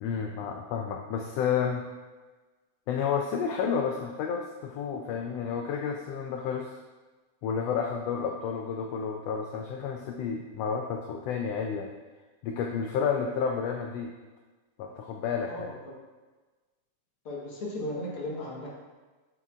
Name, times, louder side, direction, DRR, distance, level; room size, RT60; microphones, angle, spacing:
voice 1, 0.0-1.8 2.9-6.7 7.4-11.9 12.4-14.1 14.8-15.7, left 6 dB, 85° left, 2 dB, 1.4 m, -31 dB
voice 2, 15.5-15.9 17.3-18.7, left 1 dB, 55° left, -4 dB, 1.9 m, -36 dB
8.3 x 7.1 x 2.4 m, 1.3 s
omnidirectional pair, 3.4 m